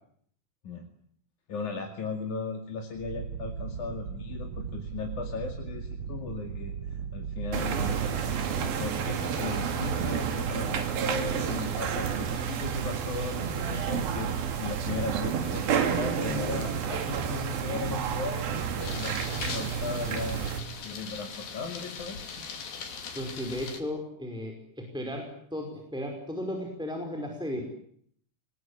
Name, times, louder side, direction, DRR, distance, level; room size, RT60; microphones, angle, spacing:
voice 1, 1.5-8.0 8.6-20.5 20.8-22.5, left 4 dB, 55° left, 3 dB, 3.8 m, -37 dB
sound 1, 2.9-8.7, right 7 dB, 65° right, 1.3 m, -37 dB
sound 2, 7.5-20.6, right 7 dB, 80° right, 4.2 m, -30 dB
sound 3, 18.8-23.8, left 5 dB, 75° left, 4.7 m, -40 dB
voice 2, 23.1-27.6, left 1 dB, ahead, 2 dB, 4.8 m, -35 dB
28.5 x 20.5 x 9.9 m, 0.66 s
omnidirectional pair, 4.2 m